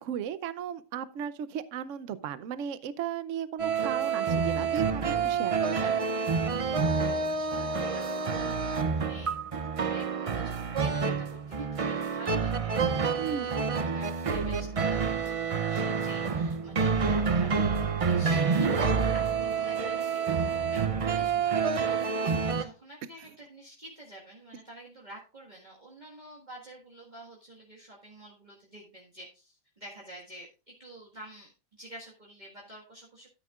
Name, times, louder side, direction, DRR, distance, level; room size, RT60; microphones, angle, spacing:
voice 1, 0.0-6.0 13.2-13.5 22.2-22.4, right 8 dB, 65° right, 15 dB, 1.0 m, -36 dB
sound 1, 3.6-22.6, right 5 dB, 50° right, 0.4 m, -28 dB
voice 2, 6.8-9.4 9.7-19.2 19.6-31.5 31.8-33.3, right 1 dB, 30° right, -3 dB, 1.9 m, -49 dB
13.0 x 9.1 x 2.4 m, 0.31 s
omnidirectional pair, 1.5 m